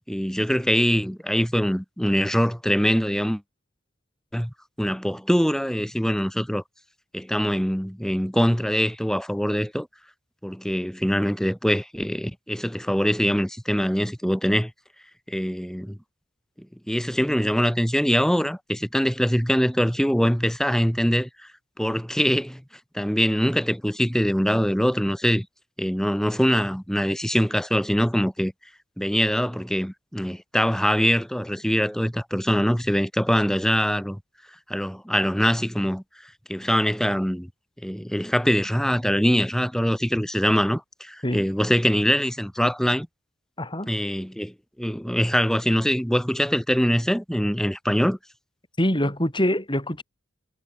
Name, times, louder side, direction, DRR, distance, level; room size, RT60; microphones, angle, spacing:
voice 1, 0.0-3.4 4.3-6.6 7.1-9.9 10.4-14.7 15.3-16.0 16.9-21.3 21.8-22.6 22.9-25.5 25.8-28.5 29.0-34.2 34.7-36.0 36.5-37.5 37.8-43.1 43.9-48.2, equal, 5° left, 2.5 m, -23 dB
voice 2, 43.6-43.9 48.8-50.0, equal, 25° left, 7.5 m, -24 dB
head